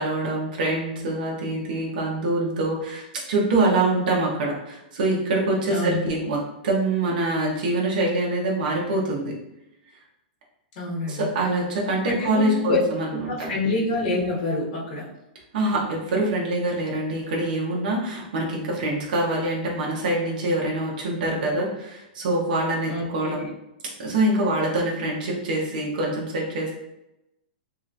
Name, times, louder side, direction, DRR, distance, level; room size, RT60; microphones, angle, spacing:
voice 1, 0.0-9.3 11.1-13.5 15.5-23.5 24.0-26.7, right 2 dB, 65° right, -3 dB, 0.9 m, -25 dB
voice 2, 5.7-6.2 10.7-11.3 12.1-12.8 13.3-15.1 22.9-23.4, left 2 dB, 50° left, -4 dB, 1.3 m, -27 dB
3.1 x 3.0 x 2.5 m, 0.89 s
supercardioid pair, 165°, 5 cm